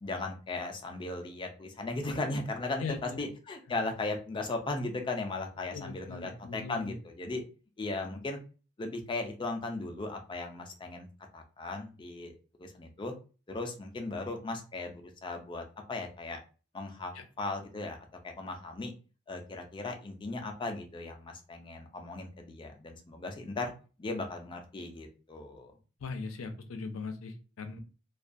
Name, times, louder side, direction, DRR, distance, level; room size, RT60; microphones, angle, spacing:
voice 1, 0.0-7.4 7.8-8.4 8.8-11.1 11.3-12.3 12.6-13.1 13.5-16.4 16.7-18.0 18.2-18.9 19.3-23.7 24.0-25.7, left 2 dB, 25° left, 4 dB, 0.4 m, -37 dB
voice 2, 2.8-3.2 5.7-6.9 17.1-17.2 26.0-27.8, left 4 dB, 85° left, 7 dB, 0.5 m, -39 dB
2.3 x 2.2 x 2.5 m, 0.35 s
head